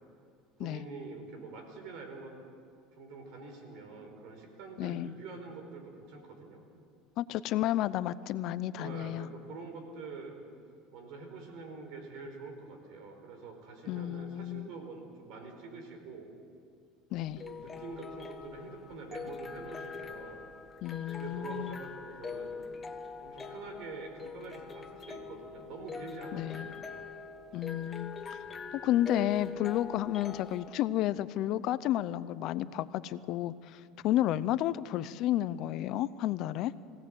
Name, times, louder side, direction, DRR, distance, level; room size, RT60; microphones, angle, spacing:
voice 1, 0.6-2.3 3.0-6.6 8.8-10.3 10.9-16.3 17.3-20.4 21.1-22.5 23.2-27.1 28.4-28.6 34.0-34.3, right 4 dB, 60° right, 4 dB, 4.8 m, -46 dB
voice 2, 4.8-5.1 7.2-9.3 13.9-14.7 17.1-17.4 20.8-21.8 26.3-26.7 27.5-28.4 28.8-36.7, left 13 dB, 50° left, 15 dB, 0.6 m, -31 dB
sound 1, 17.1-30.7, left 5 dB, 20° left, 1.1 m, -43 dB
22.5 x 17.5 x 7.8 m, 2.3 s
cardioid pair, 140°, 0 cm